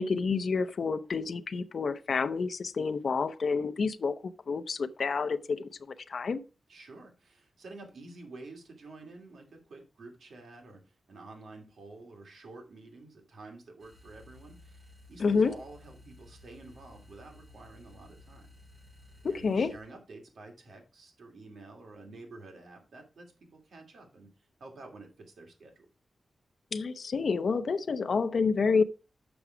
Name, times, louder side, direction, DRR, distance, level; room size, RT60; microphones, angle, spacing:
voice 1, 0.0-5.7 6.1-6.4 15.2-15.6 19.2-19.7 26.7-28.8, left 5 dB, 55° left, 0.5 m, -29 dB
voice 2, 6.7-18.5 19.2-24.3 24.6-25.9, right 2 dB, 75° right, 2.4 m, -50 dB
sound 1, 13.8-19.9, left 2 dB, 45° right, 4.7 m, -55 dB
7.0 x 6.0 x 4.9 m
wide cardioid pair, 155°, 0 cm